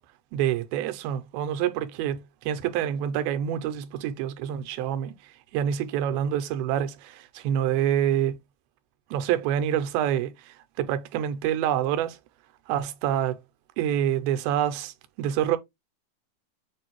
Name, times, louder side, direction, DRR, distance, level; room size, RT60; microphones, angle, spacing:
voice 1, 0.3-5.1 5.5-8.4 9.1-12.2 12.7-13.4 13.8-15.6, right 10 dB, 90° right, 2.5 m, -27 dB
6.8 x 2.6 x 2.9 m
omnidirectional pair, 4.2 m